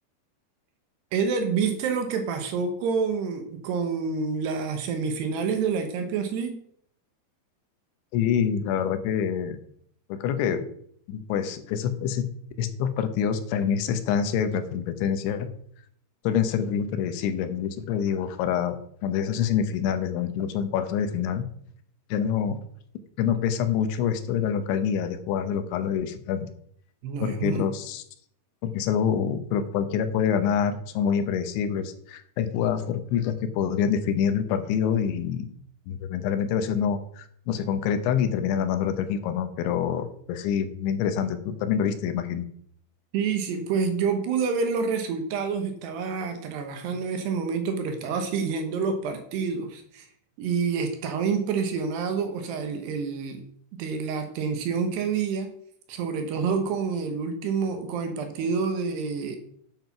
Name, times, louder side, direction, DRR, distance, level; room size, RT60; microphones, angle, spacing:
voice 1, 1.1-6.6 27.0-27.6 43.1-50.1 50.4-53.4 53.8-55.5 55.9-59.4, right 5 dB, 70° right, 6 dB, 2.9 m, -28 dB
voice 2, 8.1-9.6 10.1-10.7 11.1-12.3 12.6-15.5 16.2-21.4 22.1-22.6 23.2-26.5 27.2-28.0 28.6-35.5 35.9-42.5, left 8 dB, 80° left, 9 dB, 3.2 m, -26 dB
9.3 x 7.9 x 5.9 m, 0.64 s
omnidirectional pair, 5.5 m